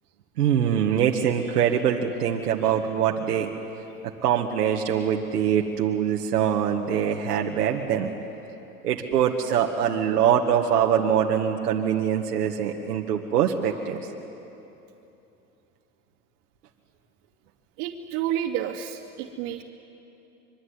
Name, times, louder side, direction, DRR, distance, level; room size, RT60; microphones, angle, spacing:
voice 1, 0.4-3.5 4.2-8.1 8.8-14.0, right 8 dB, 85° right, 1 dB, 1.9 m, -23 dB
voice 2, 17.8-19.6, right 10 dB, 55° right, -5 dB, 2.6 m, -30 dB
25.5 x 23.0 x 9.8 m, 2.9 s
hypercardioid pair, 105°, 46 cm